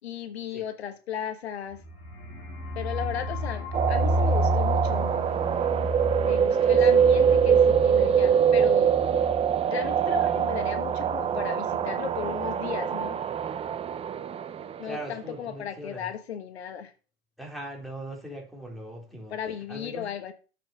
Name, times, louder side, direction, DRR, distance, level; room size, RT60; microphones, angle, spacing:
voice 1, 0.0-1.8 2.7-5.1 6.2-9.0 9.7-13.2 14.8-16.9 19.3-20.3, left 9 dB, 90° left, 1.3 m, -35 dB
sound 1, 1.7-11.5 11.7-11.8 12.1-12.6, equal, 35° left, 2.9 m, -32 dB
sound 2, 3.7-15.0, right 8 dB, 20° right, 0.5 m, -24 dB
voice 2, 6.5-7.1 14.8-16.1 17.4-19.4 19.7-20.1, right 1 dB, ahead, 3.6 m, -40 dB
8.7 x 5.9 x 5.5 m
hypercardioid pair, 115°, 31 cm